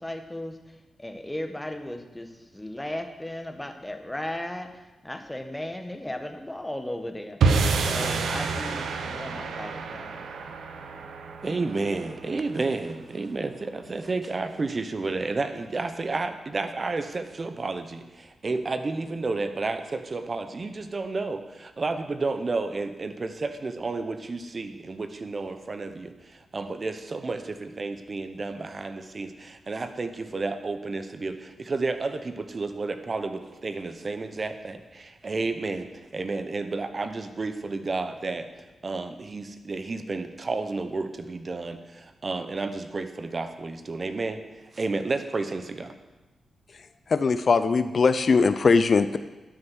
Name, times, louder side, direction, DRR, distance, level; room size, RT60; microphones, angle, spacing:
voice 1, 0.0-10.2, left 1 dB, 10° left, 6 dB, 1.5 m, -36 dB
sound 1, 7.4-13.8, right 4 dB, 80° right, 0.9 m, -29 dB
voice 2, 11.4-38.5 38.8-44.4 44.7-45.9, right 3 dB, 45° right, 9 dB, 1.0 m, -31 dB
voice 3, 46.7-49.2, left 4 dB, 60° left, 12 dB, 0.5 m, -21 dB
12.0 x 6.5 x 6.3 m, 1.1 s
supercardioid pair, 45°, 0 cm